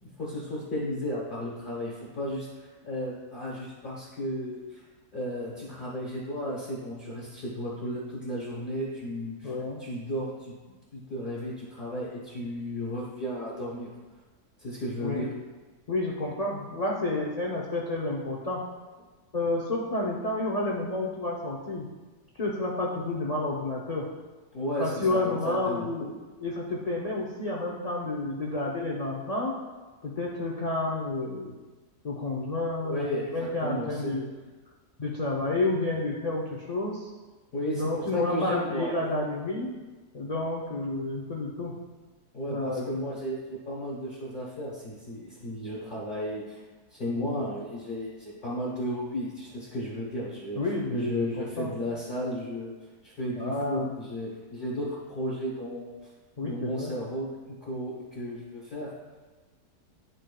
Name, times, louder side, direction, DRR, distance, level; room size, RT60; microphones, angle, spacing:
voice 1, 0.0-4.8 5.1-9.5 9.8-13.9 14.6-15.3 24.5-25.9 32.8-34.1 37.5-38.9 42.3-46.6 46.9-50.6 50.9-52.7 53.0-55.9 56.4-57.3 57.6-58.9, equal, 35° left, -6 dB, 1.2 m, -34 dB
voice 2, 9.4-9.8 15.0-15.3 15.9-18.6 19.3-21.9 22.3-24.0 24.8-26.1 26.4-29.5 30.0-31.6 32.0-34.3 35.0-37.1 37.7-39.8 40.1-41.7 42.5-42.9 47.2-47.3 50.6-51.7 53.4-53.9 56.4-56.9, left 2 dB, 90° left, -3 dB, 0.3 m, -30 dB
11.0 x 3.8 x 2.3 m, 1.3 s
omnidirectional pair, 1.7 m